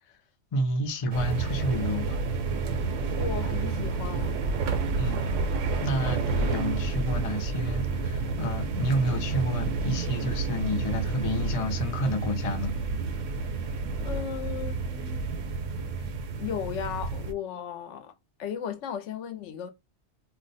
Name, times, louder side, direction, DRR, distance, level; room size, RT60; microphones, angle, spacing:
voice 1, 0.5-2.2 5.0-5.3 5.8-12.8, equal, 40° left, 0.5 m, -30 dB
sound 1, 1.1-17.3, right 4 dB, 90° right, 1.0 m, -30 dB
voice 2, 3.2-4.4 14.0-15.3 16.4-18.1 18.4-19.7, left 8 dB, 80° left, 0.9 m, -35 dB
2.4 x 2.1 x 3.9 m
omnidirectional pair, 1.2 m